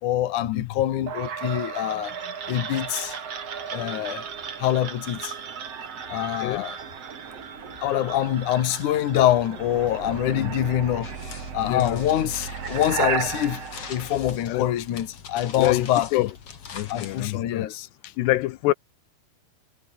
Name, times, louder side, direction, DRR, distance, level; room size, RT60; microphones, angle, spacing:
voice 1, 0.0-2.2 2.5-3.2 3.7-4.3 4.6-5.3 6.1-6.8 7.8-11.1 11.5-13.6 13.9-16.1 16.9-18.1, left 12 dB, 55° left, 2.9 m, -25 dB
sound 1, 1.1-14.9, right 7 dB, 40° right, 3.1 m, -35 dB
sound 2, 11.0-17.2, left 6 dB, 40° left, 2.9 m, -42 dB
voice 2, 11.6-12.0 14.5-14.7 15.6-16.3 16.7-17.7 18.2-18.7, left 17 dB, 85° left, 3.0 m, -26 dB
omnidirectional pair, 4.7 m